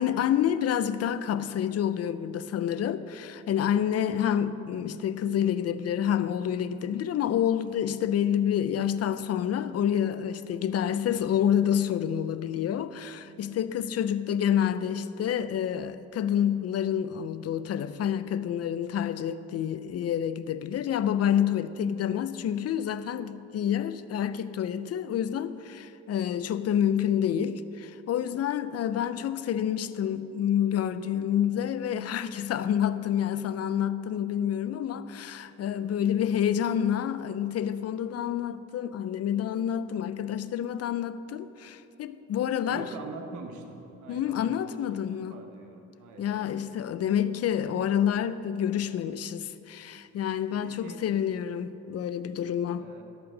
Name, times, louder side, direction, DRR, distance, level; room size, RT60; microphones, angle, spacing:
voice 1, 0.0-42.9 44.1-45.4 46.2-52.9, left 9 dB, 55° left, 0.5 m, -28 dB
voice 2, 42.6-45.0 45.3-46.4 50.6-51.0 52.8-53.0, right 3 dB, 75° right, 1.2 m, -43 dB
12.5 x 5.9 x 6.5 m
cardioid pair, 90°, 30 cm